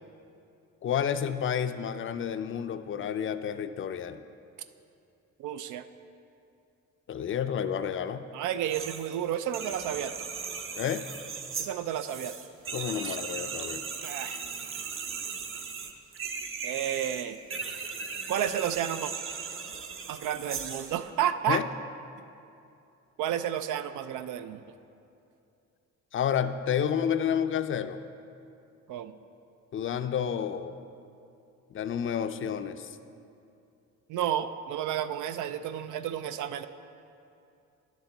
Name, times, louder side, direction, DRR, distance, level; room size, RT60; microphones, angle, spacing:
voice 1, 0.8-4.2 7.1-8.2 10.8-11.0 12.7-13.8 21.5-21.6 26.1-28.0 29.7-30.7 31.7-33.0, left 8 dB, 45° left, 10 dB, 0.4 m, -30 dB
voice 2, 5.4-5.8 8.3-10.1 11.6-12.3 13.0-13.2 14.0-14.4 16.6-17.4 18.3-19.1 20.1-21.6 23.2-24.6 28.9-29.1 34.1-36.7, right 10 dB, 80° right, 11 dB, 0.5 m, -31 dB
sound 1, 8.7-9.1 9.4-21.0, right 5 dB, 45° right, 0.7 m, -37 dB
10.0 x 7.1 x 3.9 m, 2.6 s
cardioid pair, 90°, 30 cm